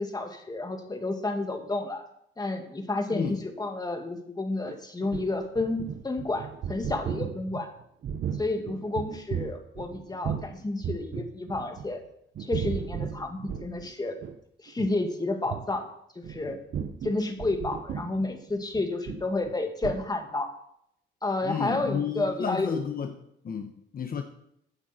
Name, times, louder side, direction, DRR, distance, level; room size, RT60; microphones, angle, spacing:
voice 1, 0.0-2.0 2.4-7.7 8.4-12.0 12.4-14.2 14.6-15.9 16.3-16.6 17.0-20.5 21.2-22.7, left 2 dB, 20° left, 5 dB, 2.1 m, -30 dB
voice 2, 3.1-3.4 21.4-23.1 23.4-24.2, left 7 dB, 45° left, 6 dB, 1.2 m, -31 dB
sound 1, 4.6-10.5 10.8-12.0 12.3-13.9 14.2-14.4 14.7-14.9 15.4-15.7 16.2-19.6 19.8-20.0, right 8 dB, 60° right, 1.1 m, -35 dB
14.5 x 9.2 x 4.4 m, 0.75 s
cardioid pair, 90°, 20 cm